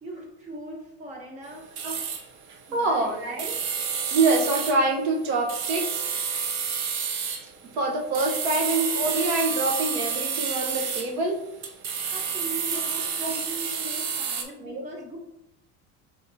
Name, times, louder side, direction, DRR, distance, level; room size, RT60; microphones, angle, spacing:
voice 1, 0.0-1.7 2.7-3.2 12.1-15.2, right 1 dB, 25° right, 0 dB, 1.0 m, -40 dB
sound 1, 1.5-11.3 11.6-14.4, right 6 dB, 40° right, 0.6 m, -29 dB
voice 2, 2.7-3.6 4.1-6.0 7.7-11.4 13.2-13.3 14.6-14.8, right 2 dB, 85° right, 1 dB, 1.0 m, -25 dB
4.6 x 3.6 x 2.7 m, 0.84 s
cardioid pair, 160°, 31 cm